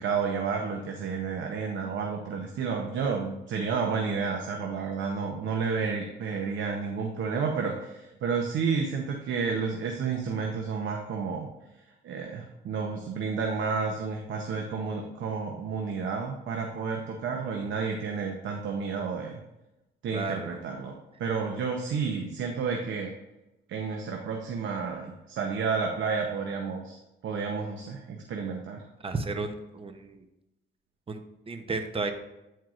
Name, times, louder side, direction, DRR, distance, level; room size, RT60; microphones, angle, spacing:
voice 1, 0.0-11.5 12.0-19.4 20.0-20.9 21.2-23.1 23.7-27.0 27.2-28.8, right 5 dB, 70° right, 2 dB, 0.8 m, -31 dB
voice 2, 20.1-20.5 29.0-30.2 31.1-31.2 31.5-32.1, right 3 dB, 30° right, 7 dB, 0.7 m, -33 dB
9.1 x 4.6 x 2.5 m, 0.95 s
cardioid pair, 90°, 20 cm